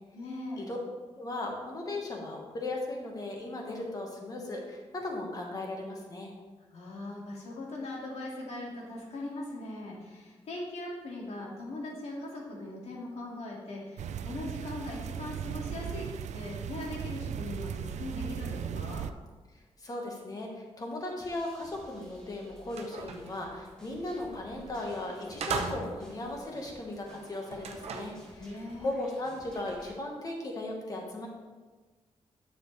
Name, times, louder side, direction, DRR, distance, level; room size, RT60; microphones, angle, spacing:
voice 1, 0.1-0.7 6.7-16.1 16.3-19.1 28.4-29.0, left 2 dB, 70° left, -3 dB, 2.1 m, -40 dB
voice 2, 1.2-6.3 19.8-31.3, left 2 dB, 30° left, 0 dB, 1.4 m, -37 dB
sound 1, 14.0-19.1, right 8 dB, 80° right, 0.4 m, -37 dB
sound 2, 21.2-29.9, right 1 dB, 5° left, 1.7 m, -54 dB
sound 3, 22.1-22.2 22.6-23.4 24.7-24.8 25.4-26.2 27.5-28.2, right 4 dB, 65° right, 0.8 m, -37 dB
9.7 x 7.0 x 3.3 m, 1.3 s
wide cardioid pair, 175°, 12 cm